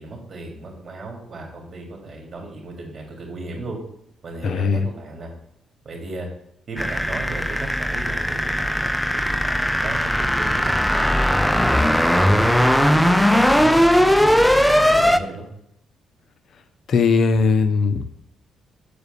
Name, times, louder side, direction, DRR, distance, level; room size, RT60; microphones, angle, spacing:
voice 1, 0.0-3.8 4.2-5.3 5.8-6.3 6.7-15.5, right 2 dB, 40° right, 0 dB, 3.1 m, -35 dB
voice 2, 4.4-4.8 16.9-18.2, left 4 dB, 60° left, 9 dB, 0.8 m, -19 dB
sound 1, 6.8-15.2, equal, 5° left, 0.5 m, -18 dB
6.8 x 5.0 x 6.8 m, 0.75 s
cardioid pair, 90°, 0 cm